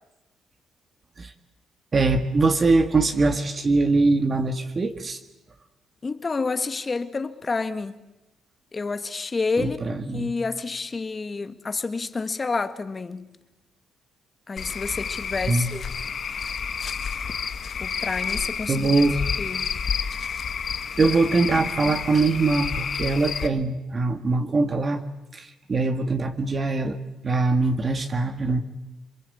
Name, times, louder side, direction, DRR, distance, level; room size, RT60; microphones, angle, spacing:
voice 1, 1.9-5.2 9.6-10.3 15.5-15.7 18.7-19.2 21.0-25.0 25.3-27.0 27.2-28.6, right 3 dB, 35° right, 1.9 m, -22 dB
voice 2, 6.0-7.9 8.7-9.8 10.1-13.3 14.5-15.8 17.8-19.0 19.4-19.8, left 4 dB, 30° left, 1.8 m, -29 dB
Cricket / Frog, 14.6-23.5, left 6 dB, 50° left, 1.5 m, -30 dB
27.5 x 22.5 x 8.5 m
cardioid pair, 90°, 0 cm